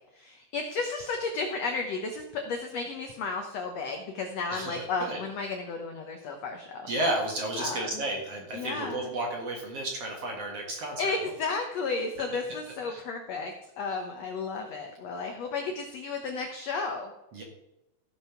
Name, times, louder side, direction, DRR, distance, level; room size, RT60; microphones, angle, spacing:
voice 1, 0.1-6.9 7.6-8.0 8.5-9.1 10.7-17.1, left 4 dB, 80° left, 4 dB, 1.5 m, -33 dB
voice 2, 4.5-5.2 6.9-11.2 12.9-13.0 17.3-17.4, right 1 dB, 50° right, 0 dB, 2.2 m, -32 dB
14.5 x 5.7 x 5.8 m, 0.94 s
omnidirectional pair, 4.4 m